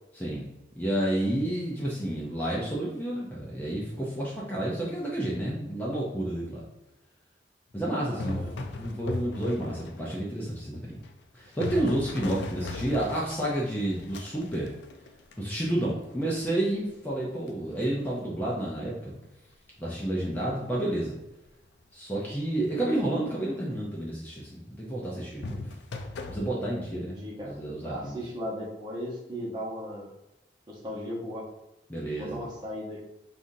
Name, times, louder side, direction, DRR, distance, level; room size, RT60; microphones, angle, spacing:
voice 1, 0.1-0.5 0.8-6.6 7.7-11.0 11.3-14.8 15.4-19.1 19.8-21.2 21.9-25.7 26.3-28.2 31.9-32.4, right 1 dB, 10° left, -5 dB, 0.5 m, -30 dB
sound 1, 8.0-10.2 10.7-15.7 17.5-17.7 25.4-26.4, left 3 dB, 80° left, 0.4 m, -37 dB
voice 2, 8.0-8.5 26.9-27.6 27.8-30.1 30.7-31.5 32.2-33.0, equal, 25° right, -5 dB, 0.9 m, -37 dB
5.4 x 2.5 x 2.7 m, 0.95 s
head